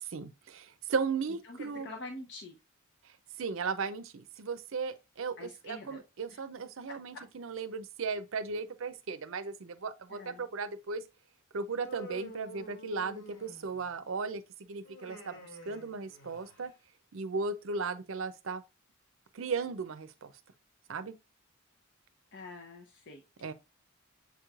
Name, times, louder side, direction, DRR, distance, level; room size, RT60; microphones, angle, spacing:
voice 1, 0.0-1.9 3.4-11.0 11.5-14.4 14.7-16.7 17.1-18.6 19.3-20.3 20.9-21.1 23.4-23.5, right 4 dB, 65° right, 0.5 m, -36 dB
voice 2, 1.4-2.6 5.4-6.0 6.3-6.4 6.9-7.2 10.1-10.5 22.3-23.2, left 2 dB, 55° left, 0.8 m, -46 dB
Human voice, 11.7-14.0 14.8-16.7, right 1 dB, 80° left, 2.3 m, -48 dB
7.0 x 3.1 x 2.4 m
head